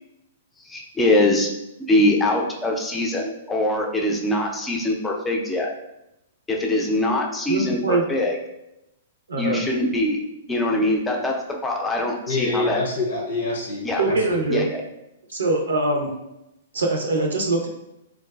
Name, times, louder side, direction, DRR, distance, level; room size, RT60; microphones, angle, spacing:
voice 1, 0.6-1.5 1.9-5.7 6.5-8.4 9.4-10.2 10.5-12.8 13.8-14.0 14.5-14.8, left 1 dB, 15° left, 0 dB, 0.5 m, -23 dB
voice 2, 7.5-8.0 9.3-9.6 14.0-14.7 15.3-16.1 16.7-17.7, right 2 dB, 85° right, 1 dB, 0.6 m, -22 dB
voice 3, 12.3-14.4, left 2 dB, 75° left, 0 dB, 0.7 m, -26 dB
3.8 x 2.3 x 2.3 m, 0.88 s
hypercardioid pair, 125°, 0 cm